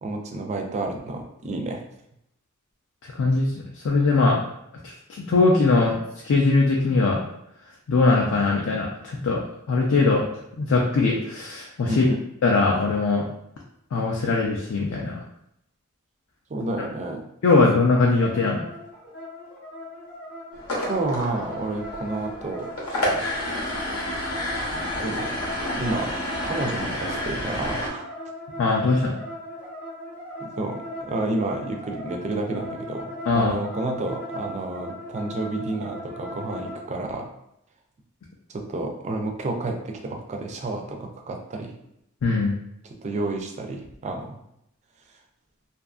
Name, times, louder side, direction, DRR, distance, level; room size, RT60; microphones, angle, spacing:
voice 1, 0.0-1.8 11.9-12.2 16.5-17.2 20.8-22.7 24.7-25.4 25.7-26.1 26.4-28.1 30.4-37.3 38.5-41.7 42.8-44.4, right 2 dB, 30° right, 3 dB, 0.3 m, -30 dB
voice 2, 3.2-3.5 3.8-4.4 4.8-7.2 7.9-9.4 9.7-10.3 10.6-12.1 12.4-13.2 13.9-15.2 17.4-18.6 28.6-29.1 33.3-33.5 42.2-42.5, left 3 dB, 70° left, -1 dB, 0.4 m, -21 dB
sound 1, 18.2-36.8, equal, 50° left, 0.8 m, -38 dB
sound 2, 20.5-27.9, left 1 dB, 85° left, 0.8 m, -30 dB
2.7 x 2.4 x 2.3 m, 0.79 s
head